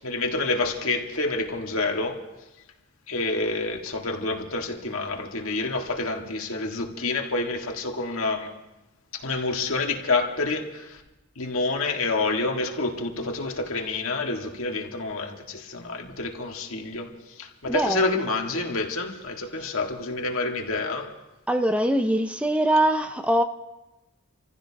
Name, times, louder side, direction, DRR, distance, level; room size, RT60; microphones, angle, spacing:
voice 1, 0.0-2.2 3.1-8.5 9.1-11.0 11.4-17.1 17.4-21.1, left 3 dB, 75° left, 2 dB, 1.8 m, -28 dB
voice 2, 17.6-18.2 21.5-23.4, right 1 dB, 5° right, 8 dB, 0.4 m, -23 dB
28.0 x 15.5 x 2.9 m, 1.0 s
head